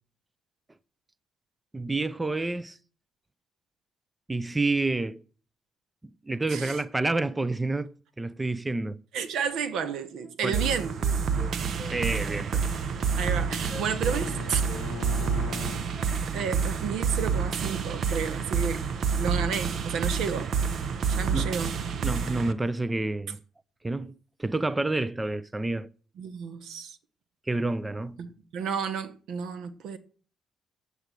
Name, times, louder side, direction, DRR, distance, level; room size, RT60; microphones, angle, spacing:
voice 1, 1.7-2.8 4.3-5.2 6.3-9.0 10.4-10.6 11.8-12.6 21.3-21.5 22.0-23.4 23.8-24.1 24.4-25.9 27.5-28.2, right 2 dB, 15° right, 0.6 m, -29 dB
voice 2, 6.5-6.8 9.1-11.2 13.2-14.7 16.3-18.8 19.2-20.5 21.1-21.7 26.2-27.0 28.2-30.0, right 6 dB, 80° right, 1.2 m, -32 dB
Wind instrument woodwind instrument, 9.7-9.9 10.2-12.0 12.2-12.5 12.7-12.9 13.2-13.4 13.7-14.3 14.7-16.5, left 3 dB, 15° left, 1.9 m, -46 dB
sound 1, 10.5-22.5, right 6 dB, 60° right, 1.1 m, -28 dB
Bowed string instrument, 12.1-15.9, left 9 dB, 90° left, 0.7 m, -42 dB
8.2 x 8.1 x 9.1 m
cardioid pair, 90°, 0 cm